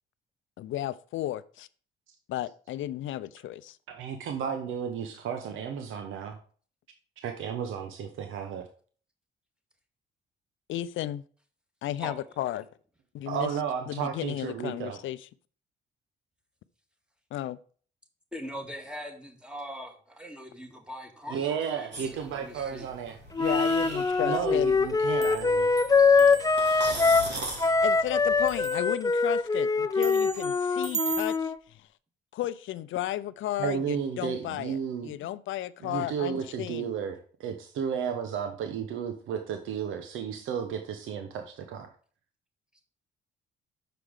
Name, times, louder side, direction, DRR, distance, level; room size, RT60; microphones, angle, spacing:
voice 1, 0.6-1.7 2.3-3.8 10.7-11.2 11.8-12.7 13.1-13.5 13.9-15.3 17.3-17.6 23.4-24.7 27.8-31.9 32.3-34.8 35.0-36.9, left 13 dB, 75° left, 0.6 m, -34 dB
voice 2, 3.9-6.4 7.2-8.7 13.3-15.0 21.3-23.2 24.2-25.7 33.6-35.1 35.8-41.9, right 7 dB, 85° right, 1.1 m, -33 dB
voice 3, 18.3-22.9 26.0-26.4, equal, 5° right, 2.0 m, -41 dB
sound 1, 21.9-28.6, right 2 dB, 60° right, 3.3 m, -40 dB
Wind instrument woodwind instrument, 23.4-27.3 27.6-31.6, left 4 dB, 20° left, 0.5 m, -23 dB
sound 2, 24.3-24.6 24.9-28.2 28.5-29.2 30.0-31.4, right 8 dB, 35° right, 0.5 m, -39 dB
6.8 x 5.0 x 6.4 m
cardioid pair, 90°, 20 cm